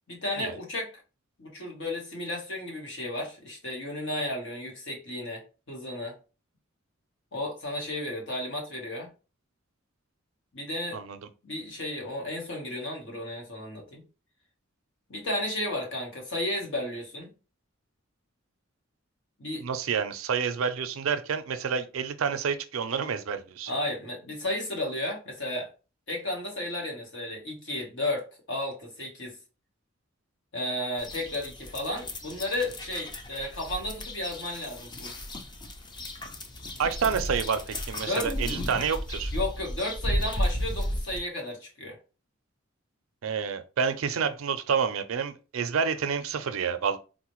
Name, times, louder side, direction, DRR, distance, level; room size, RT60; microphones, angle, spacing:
voice 1, 0.1-0.9 1.4-6.1 7.3-9.1 10.5-11.0 11.4-14.0 15.1-17.3 19.4-19.6 23.7-25.7 26.1-29.4 30.5-35.2 38.1-38.3 39.3-42.0, left 1 dB, 65° left, 1.2 m, -33 dB
voice 2, 19.6-23.7 36.8-39.3 43.2-47.0, right 6 dB, 75° right, 0.4 m, -29 dB
sound 1, 31.0-41.2, left 1 dB, 20° left, 0.4 m, -34 dB
4.0 x 2.1 x 3.0 m
head